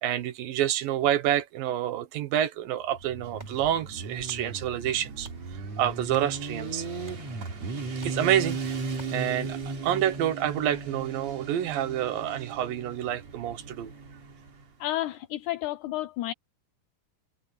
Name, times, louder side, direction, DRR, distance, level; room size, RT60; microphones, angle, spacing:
voice 1, 0.0-5.3 5.8-6.9 8.0-8.8 9.1-13.9, right 11 dB, 75° right, 2.8 m, -28 dB
Motorcycle, 2.9-14.6, right 4 dB, 50° right, 4.4 m, -37 dB
sound 1, 5.2-14.1, right 1 dB, 10° right, 6.8 m, -57 dB
voice 2, 14.8-16.3, left 15 dB, 85° left, 1.7 m, -31 dB
omnidirectional pair, 4.2 m